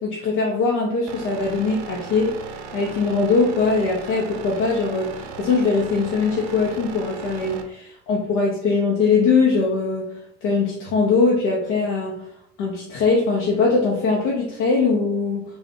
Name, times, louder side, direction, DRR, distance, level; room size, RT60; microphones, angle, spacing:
voice 1, 0.0-2.3 2.7-10.1 10.4-12.1 12.6-15.4, left 4 dB, 55° left, -2 dB, 0.9 m, -21 dB
sound 1, 1.1-7.6, right 5 dB, 50° right, 0.6 m, -36 dB
3.6 x 2.5 x 3.6 m, 0.76 s
hypercardioid pair, 80°, 36 cm